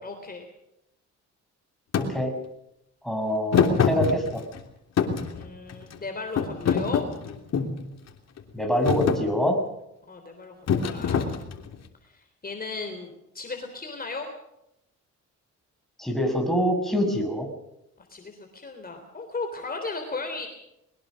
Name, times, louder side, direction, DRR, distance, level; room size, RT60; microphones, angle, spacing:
voice 1, 0.0-0.5 5.3-7.0 10.1-11.3 12.0-14.3 18.0-20.5, left 3 dB, 30° left, 4 dB, 3.6 m, -36 dB
Thump thud, 1.9-2.1 3.5-4.6 5.0-6.0 6.4-7.8 8.4-8.6 8.9-9.2 10.7-11.7, left 6 dB, 55° left, 3.1 m, -24 dB
voice 2, 1.9-2.3 3.0-4.4 8.5-9.6 16.0-17.5, equal, ahead, 2 dB, 6.6 m, -25 dB
22.0 x 21.0 x 6.4 m, 0.84 s
cardioid pair, 90°, 30 cm